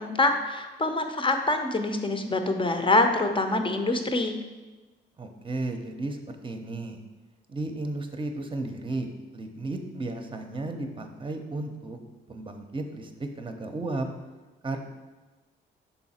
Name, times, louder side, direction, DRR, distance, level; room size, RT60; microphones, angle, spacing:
voice 1, 0.0-4.4, left 2 dB, 25° left, 6 dB, 0.8 m, -25 dB
voice 2, 5.2-7.0 7.5-12.0 12.3-14.1 14.6-14.8, right 2 dB, 25° right, 5 dB, 0.8 m, -34 dB
5.7 x 3.9 x 4.3 m, 1.2 s
supercardioid pair, 60°, 21 cm